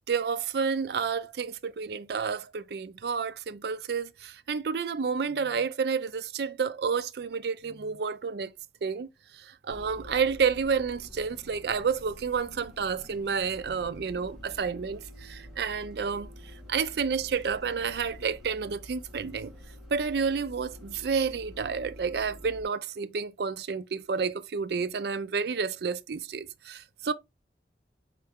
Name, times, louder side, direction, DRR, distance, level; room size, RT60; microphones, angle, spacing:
voice 1, 0.1-8.5 8.8-9.1 9.3-16.3 16.7-19.5 19.9-27.1, right 5 dB, 65° right, 0.4 m, -30 dB
Bus, 9.7-22.6, left 1 dB, ahead, 1.8 m, -48 dB
4.5 x 3.3 x 3.5 m
head